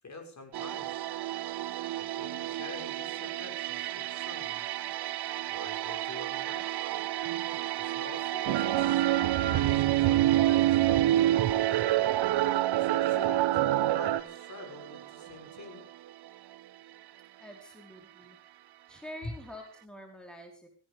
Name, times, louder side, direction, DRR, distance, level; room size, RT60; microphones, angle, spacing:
voice 1, 0.0-1.1 1.9-4.7 5.5-6.7 7.8-11.4 12.7-15.8 19.2-19.3, left 2 dB, 40° left, 4 dB, 6.9 m, -46 dB
sound 1, 0.5-19.4 19.6-19.8, right 14 dB, 60° right, 0.7 m, -36 dB
sound 2, 8.5-14.2, right 14 dB, 80° right, 1.4 m, -25 dB
voice 2, 17.4-18.4 18.9-20.7, equal, ahead, 2 dB, 4.9 m, -46 dB
18.0 x 15.5 x 5.2 m, 0.39 s
cardioid pair, 105°, 43 cm